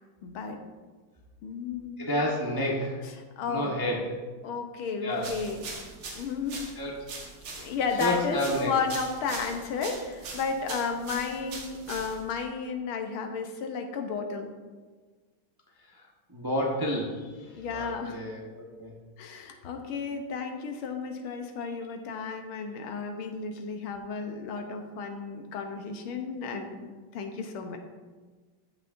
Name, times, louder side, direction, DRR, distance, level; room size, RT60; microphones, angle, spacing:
voice 1, 0.2-0.6 1.4-2.0 3.0-4.0 4.4-5.7 6.1-6.7 7.6-14.5 17.5-18.2 19.2-27.8, left 5 dB, 85° left, 5 dB, 1.7 m, -33 dB
voice 2, 2.0-3.0 3.5-4.0 5.0-5.3 6.8-6.9 8.0-8.7 16.3-17.2 17.7-18.9, left 1 dB, 20° right, -2 dB, 0.6 m, -29 dB
sound 1, 5.2-12.4, right 3 dB, 75° right, 2.1 m, -41 dB
13.5 x 6.1 x 2.6 m, 1.4 s
omnidirectional pair, 2.3 m